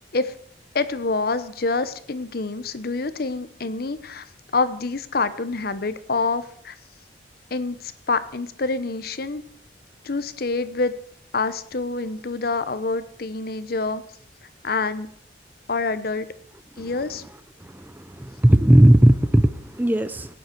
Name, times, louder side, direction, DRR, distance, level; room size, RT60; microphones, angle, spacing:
voice 1, 0.7-4.3 4.5-6.8 7.5-9.4 10.0-10.9 11.3-14.0 14.6-15.1 15.7-16.3 16.8-17.2, left 3 dB, 55° left, 13 dB, 0.8 m, -26 dB
voice 2, 17.6-20.3, right 1 dB, 10° right, 13 dB, 0.4 m, -17 dB
17.5 x 9.5 x 4.5 m, 0.65 s
head